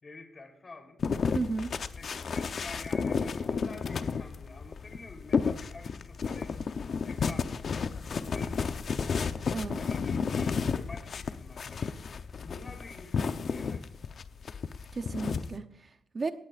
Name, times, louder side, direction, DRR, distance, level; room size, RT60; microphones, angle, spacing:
voice 1, 0.0-1.0 1.9-6.8 7.0-7.7 8.3-8.8 9.8-12.0 12.4-14.0, left 3 dB, 35° left, 6 dB, 3.5 m, -48 dB
sound 1, 1.0-15.5, left 5 dB, 50° left, 0.7 m, -32 dB
voice 2, 1.3-1.7 9.5-9.8 14.9-16.3, right 3 dB, 35° right, 8 dB, 0.8 m, -34 dB
18.0 x 14.5 x 2.5 m, 0.79 s
cardioid pair, 120°, 0 cm